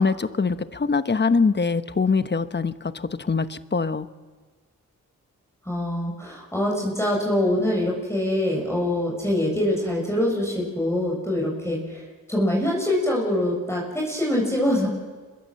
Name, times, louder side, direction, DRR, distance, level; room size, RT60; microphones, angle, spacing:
voice 1, 0.0-4.1, left 4 dB, 35° left, 12 dB, 1.1 m, -23 dB
voice 2, 5.6-12.0 12.3-14.9, left 1 dB, 10° left, -2 dB, 6.7 m, -24 dB
27.0 x 21.5 x 7.6 m, 1.4 s
cardioid pair, 65°, 31 cm